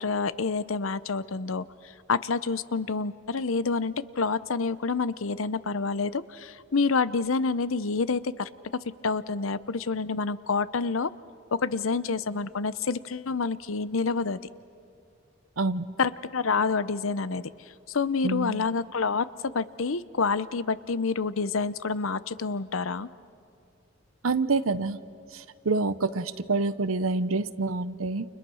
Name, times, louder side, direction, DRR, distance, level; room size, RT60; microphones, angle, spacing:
voice 1, 0.0-1.6 2.1-8.5 9.0-11.1 11.5-14.4 16.0-17.5 17.9-23.1, left 4 dB, 75° left, 16 dB, 0.7 m, -28 dB
voice 2, 15.6-15.9 18.2-18.6 24.2-25.0 25.3-28.3, right 3 dB, 80° right, 15 dB, 0.9 m, -27 dB
29.5 x 29.0 x 6.4 m, 2.5 s
head